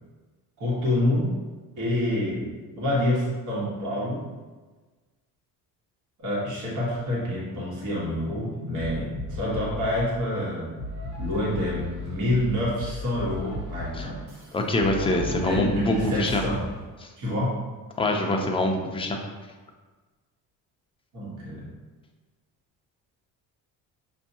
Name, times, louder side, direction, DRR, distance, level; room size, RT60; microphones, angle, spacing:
voice 1, 0.6-1.3 1.8-2.5 2.8-4.2 6.2-10.7 11.2-14.2 15.3-16.6 17.2-17.5 21.1-21.6, left 1 dB, 50° right, -6 dB, 1.5 m, -27 dB
sound 1, 8.8-10.1 10.8-16.8, left 2 dB, 70° right, 1.4 m, -35 dB
voice 2, 14.5-16.4 17.0-17.1 18.0-19.2, left 1 dB, 15° left, 2 dB, 0.5 m, -25 dB
5.9 x 2.7 x 2.7 m, 1.3 s
cardioid pair, 110°, 39 cm